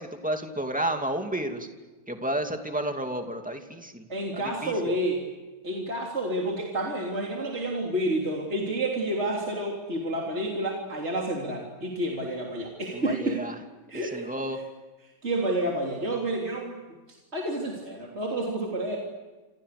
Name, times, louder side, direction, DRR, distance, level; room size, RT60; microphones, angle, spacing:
voice 1, 0.0-1.7 2.1-4.0 4.3-4.7 12.9-13.5 14.1-14.6, right 1 dB, 5° right, 4 dB, 2.5 m, -31 dB
voice 2, 4.1-5.2 5.6-13.4 13.9-14.2 15.2-16.8 17.3-19.0, right 1 dB, 40° right, -1 dB, 3.6 m, -29 dB
28.0 x 27.5 x 6.8 m, 1.2 s
omnidirectional pair, 1.8 m